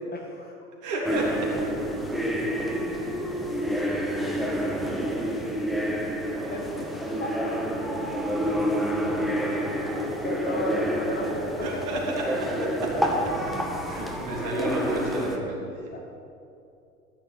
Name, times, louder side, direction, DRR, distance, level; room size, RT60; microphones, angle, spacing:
voice 1, 0.1-0.6 6.5-6.9 7.2-7.5 10.0-11.8 12.3-12.8 15.6-16.0, left 2 dB, 20° left, 1 dB, 1.3 m, -34 dB
voice 2, 0.8-1.5 8.0-8.1 8.4-8.6 11.6-12.2 13.8-16.0, right 2 dB, 40° right, -2 dB, 3.1 m, -32 dB
sound 1, 1.0-15.4, equal, ahead, 1.1 m, -28 dB
14.5 x 10.0 x 4.1 m, 2.6 s
figure-of-eight pair, 95°, 44 cm